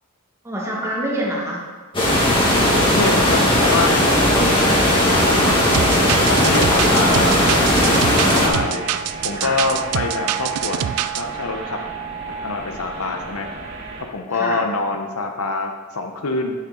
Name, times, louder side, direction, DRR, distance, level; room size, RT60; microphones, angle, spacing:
voice 1, 0.4-1.7 6.9-7.5 9.3-9.6 14.3-14.6, right 1 dB, 15° right, -3 dB, 1.5 m, -27 dB
sound 1, 1.9-8.5, left 1 dB, 25° left, 1.9 m, -17 dB
voice 2, 2.9-5.6 6.3-8.8 9.2-10.9 11.2-11.8 12.4-13.5 14.1-16.5, left 3 dB, 70° left, 4 dB, 0.8 m, -25 dB
sound 2, 5.7-11.2, right 10 dB, 75° right, 0.4 m, -25 dB
sound 3, 6.1-14.0, right 4 dB, 50° right, 2.1 m, -32 dB
9.8 x 6.5 x 3.8 m, 1.5 s
head